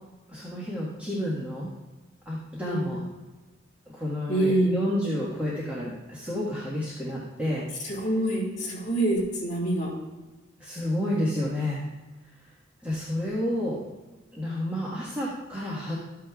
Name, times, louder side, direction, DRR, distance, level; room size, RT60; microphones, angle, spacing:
voice 1, 0.3-1.7 2.2-3.0 3.9-7.6 10.6-11.8 12.8-13.8 14.3-15.9, left 1 dB, 10° right, -7 dB, 1.6 m, -30 dB
voice 2, 2.6-3.0 4.3-4.8 7.8-9.9, right 1 dB, 40° left, -4 dB, 2.8 m, -26 dB
14.0 x 9.2 x 2.4 m, 1.2 s
head